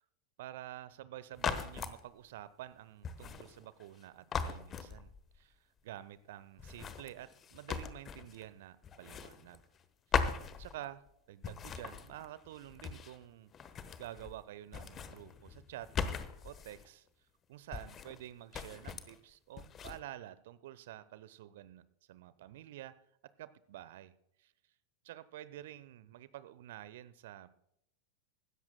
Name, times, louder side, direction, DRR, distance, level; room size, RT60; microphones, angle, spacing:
voice 1, 0.4-9.6 10.1-10.2 10.6-13.5 14.0-15.9 16.4-17.1 17.5-22.9 23.4-24.1 24.4-24.5 25.0-27.5, right 13 dB, 55° right, 16 dB, 0.8 m, -49 dB
sound 1, 1.3-2.0 3.0-4.0 4.3-5.4 6.6-8.5 8.8-9.8 10.1-11.1 11.4-13.2 13.5-14.4 14.7-16.9 17.7-18.2 18.5-19.2 19.6-20.0, left 6 dB, 25° left, 1.1 m, -39 dB
25.0 x 13.0 x 2.2 m, 0.77 s
figure-of-eight pair, 90°, 0 cm